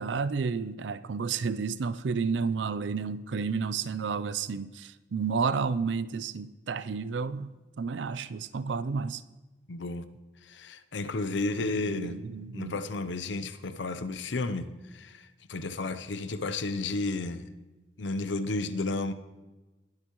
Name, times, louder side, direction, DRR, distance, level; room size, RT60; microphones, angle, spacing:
voice 1, 0.0-9.2 11.8-12.8, right 5 dB, 75° right, 0.5 m, -31 dB
voice 2, 9.7-10.1 10.5-12.2 12.5-15.2 15.5-17.5 18.0-19.1, left 3 dB, 75° left, 0.7 m, -32 dB
20.5 x 8.2 x 3.1 m
head